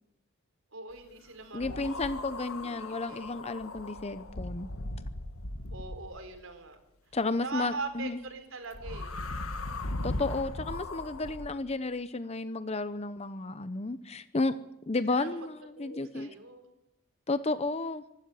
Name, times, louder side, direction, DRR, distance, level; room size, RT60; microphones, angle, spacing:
voice 1, 0.7-2.0 2.5-3.2 5.7-6.8 7.4-9.1 15.0-15.5 15.8-16.7, right 3 dB, 70° right, 6 dB, 4.3 m, -41 dB
voice 2, 1.5-4.7 7.1-8.2 10.0-14.6 14.9-16.3 17.3-18.0, left 3 dB, 30° left, 12 dB, 0.7 m, -32 dB
sound 1, 1.6-6.3 8.7-11.5, left 2 dB, 85° left, 1.6 m, -38 dB
24.5 x 12.5 x 9.8 m, 0.91 s
head